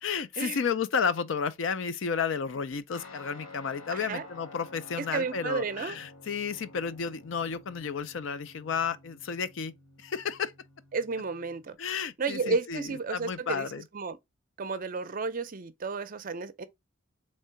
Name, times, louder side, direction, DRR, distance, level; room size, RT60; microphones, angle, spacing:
voice 1, 0.0-9.7 10.0-10.5 11.8-13.8, left 6 dB, 65° left, 0.5 m, -32 dB
Guitar, 2.9-11.7, left 2 dB, 80° left, 1.2 m, -51 dB
voice 2, 3.9-4.3 5.0-6.0 10.9-11.8 12.2-13.7 13.9-14.2 14.6-16.7, right 4 dB, 40° right, 0.5 m, -32 dB
3.7 x 3.2 x 4.4 m
head